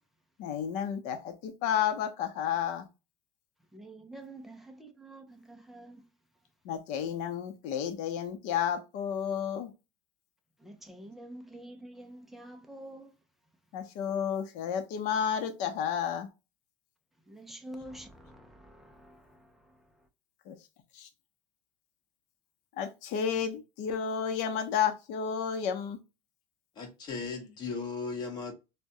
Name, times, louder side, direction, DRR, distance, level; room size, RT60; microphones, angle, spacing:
voice 1, 0.4-2.9 6.6-9.7 13.7-16.3 20.5-20.6 20.9-21.1 22.8-26.0, left 8 dB, 50° left, 0.6 m, -31 dB
voice 2, 3.7-6.0 10.6-13.1 17.3-20.1, right 1 dB, ahead, 0.4 m, -48 dB
voice 3, 26.7-28.5, left 4 dB, 25° left, 0.9 m, -37 dB
4.7 x 2.1 x 2.6 m
cardioid pair, 175°, 16 cm